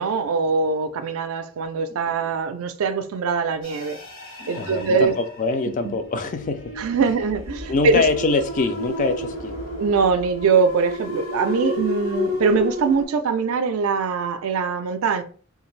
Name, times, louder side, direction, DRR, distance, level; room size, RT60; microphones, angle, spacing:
voice 1, 0.0-4.0 4.5-5.1 5.8-5.9 6.8-8.0 9.8-15.2, right 5 dB, 75° right, 0.4 m, -22 dB
sound 1, 3.6-13.0, left 1 dB, 70° left, 1.0 m, -32 dB
voice 2, 4.4-6.7 7.7-9.6, left 3 dB, 40° left, 0.3 m, -24 dB
2.5 x 2.3 x 3.1 m
head